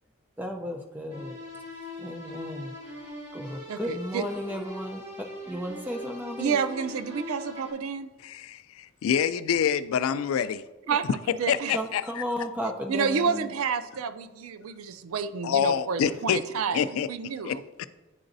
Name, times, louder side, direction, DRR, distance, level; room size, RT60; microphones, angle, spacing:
voice 1, 0.4-1.4 2.0-2.7 3.3-6.6 10.9-11.0 11.7-13.5, equal, 10° right, 0.5 m, -34 dB
sound 1, 1.1-7.7, left 1 dB, 35° right, 2.1 m, -41 dB
voice 2, 3.7-4.2 6.4-8.1 10.9-11.8 12.9-17.6, right 6 dB, 90° right, 0.4 m, -30 dB
voice 3, 8.2-10.6 11.5-12.0 15.4-16.4 16.7-17.1 17.4-17.9, left 8 dB, 85° left, 0.3 m, -26 dB
9.8 x 3.9 x 2.6 m
head